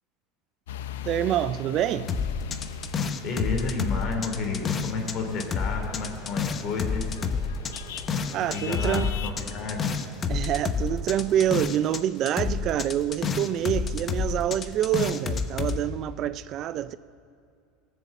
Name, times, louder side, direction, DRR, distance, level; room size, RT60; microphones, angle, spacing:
sound 1, 0.7-9.3, left 8 dB, 90° left, 0.5 m, -40 dB
voice 1, 1.0-2.1 8.3-9.2 10.3-17.0, right 11 dB, 45° right, 0.3 m, -26 dB
sound 2, 2.1-5.1 5.4-12.0 12.3-15.8, left 5 dB, 30° left, 0.8 m, -29 dB
voice 2, 3.2-7.1 8.4-10.0, left 4 dB, 50° left, 2.8 m, -31 dB
sound 3, 5.0-11.5, right 2 dB, 20° right, 3.1 m, -48 dB
18.0 x 7.0 x 7.1 m
supercardioid pair, 115°, 0 cm